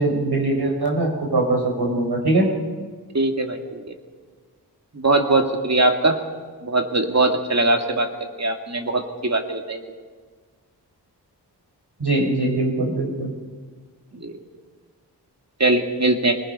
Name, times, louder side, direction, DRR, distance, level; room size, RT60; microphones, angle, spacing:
voice 1, 0.0-2.5 12.0-13.3, right 2 dB, 70° right, 1 dB, 4.5 m, -21 dB
voice 2, 3.1-3.9 4.9-6.2 6.6-8.1 8.4-9.9 14.1-14.4 15.6-16.4, right 2 dB, 40° right, 4 dB, 2.2 m, -21 dB
26.0 x 19.5 x 5.5 m, 1.5 s
wide cardioid pair, 60°, 42 cm